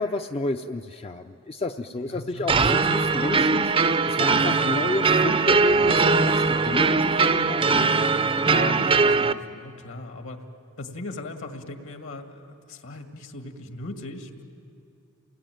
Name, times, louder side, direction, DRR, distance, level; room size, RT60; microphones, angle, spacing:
voice 1, 0.0-7.9, left 2 dB, 30° left, 6 dB, 0.5 m, -31 dB
voice 2, 2.0-2.6 8.5-10.4 10.8-14.4, left 2 dB, 65° left, 5 dB, 2.0 m, -38 dB
sound 1, 2.5-9.3, right 4 dB, 25° right, 0.5 m, -21 dB
29.0 x 19.5 x 9.2 m, 2.7 s
head